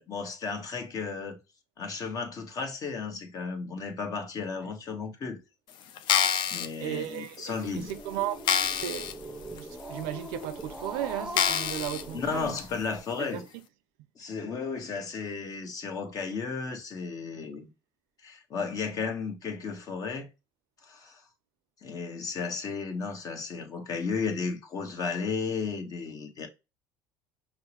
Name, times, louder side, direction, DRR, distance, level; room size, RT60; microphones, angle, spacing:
voice 1, 0.0-1.4 1.8-5.4 6.5-7.9 12.1-13.4 14.2-17.7 18.2-20.3 20.8-21.2 21.8-26.5, left 5 dB, 40° left, 1.1 m, -34 dB
sound 1, 6.0-6.7 7.3-7.4 7.9-8.0 8.4-9.1 9.6-9.7 10.4-10.5 11.3-12.0 12.6-12.7, left 8 dB, 60° left, 0.5 m, -26 dB
voice 2, 6.8-8.5 8.7-9.1 9.5-12.6 13.1-13.5, right 13 dB, 80° right, 0.5 m, -35 dB
Growling, 7.6-13.0, equal, 5° right, 0.7 m, -42 dB
5.5 x 2.0 x 3.0 m
supercardioid pair, 105°, 9 cm